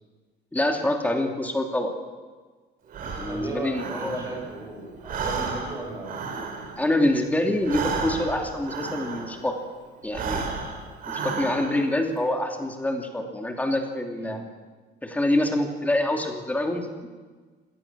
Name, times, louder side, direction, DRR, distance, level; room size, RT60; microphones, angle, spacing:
voice 1, 0.5-1.9 3.2-4.2 6.8-9.5 10.0-10.5 11.1-14.4 15.0-17.1, left 1 dB, 10° left, 3 dB, 2.7 m, -26 dB
Breathing, 2.9-4.7 5.0-9.6 10.0-12.0, right 4 dB, 50° right, 4.4 m, -33 dB
voice 2, 3.3-6.3 14.1-14.4, right 2 dB, 15° right, 1 dB, 6.4 m, -36 dB
26.5 x 18.5 x 7.5 m, 1.4 s
cardioid pair, 165°, 18 cm